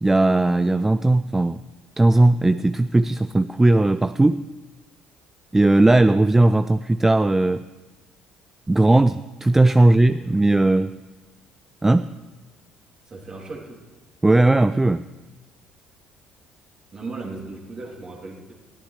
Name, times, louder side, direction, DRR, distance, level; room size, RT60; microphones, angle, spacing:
voice 1, 0.0-1.7 2.0-4.4 5.5-7.6 8.7-10.9 11.8-12.2 14.2-15.0, right 2 dB, 15° right, 13 dB, 0.4 m, -17 dB
voice 2, 9.8-10.3 13.1-13.8 16.9-18.5, right 3 dB, 40° right, -1 dB, 3.1 m, -37 dB
20.5 x 14.5 x 3.3 m, 1.2 s
hypercardioid pair, 55°, 2 cm